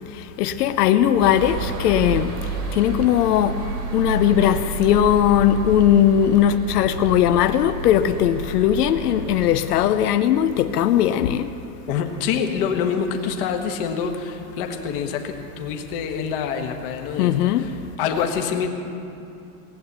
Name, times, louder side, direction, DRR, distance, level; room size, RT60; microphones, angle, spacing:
voice 1, 0.1-2.3 2.7-11.5 17.2-17.7, left 10 dB, 85° left, 9 dB, 0.8 m, -19 dB
sound 1, 1.2-9.8, right 2 dB, 80° right, 2.9 m, -30 dB
voice 2, 11.9-17.7 18.0-18.7, left 7 dB, 40° left, 4 dB, 1.2 m, -26 dB
18.5 x 8.8 x 8.1 m, 2.7 s
supercardioid pair, 180°, 45 cm